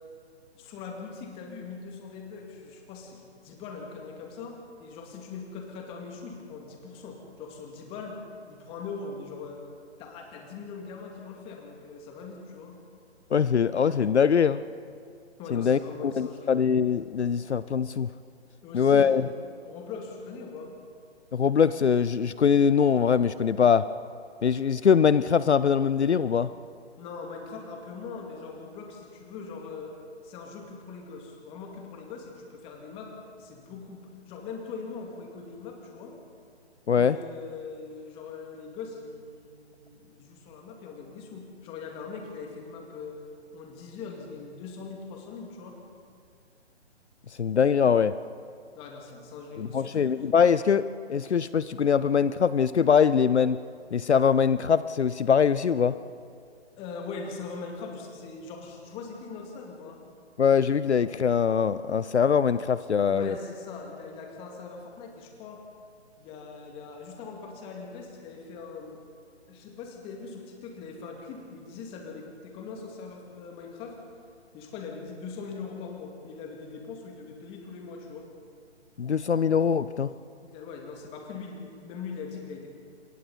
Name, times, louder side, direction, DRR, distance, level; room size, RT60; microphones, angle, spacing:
voice 1, 0.5-8.2 8.5-9.6 10.0-12.8 15.4-16.6 18.6-19.3 19.6-20.7 27.0-29.9 30.2-36.1 36.9-43.2 43.5-45.8 48.8-50.1 56.8-60.0 63.1-65.6 66.2-69.0 69.5-74.0 74.5-78.3 80.4-82.7, left 5 dB, 15° left, 1 dB, 2.3 m, -41 dB
voice 2, 13.3-14.6 15.5-15.8 16.2-18.1 18.7-19.2 21.3-23.9 24.4-26.5 36.9-37.2 47.4-48.2 49.6-53.6 53.9-56.0 60.4-63.3 79.0-80.1, left 7 dB, 75° left, 15 dB, 0.7 m, -22 dB
27.0 x 22.5 x 4.2 m, 2.3 s
figure-of-eight pair, 140°, 34 cm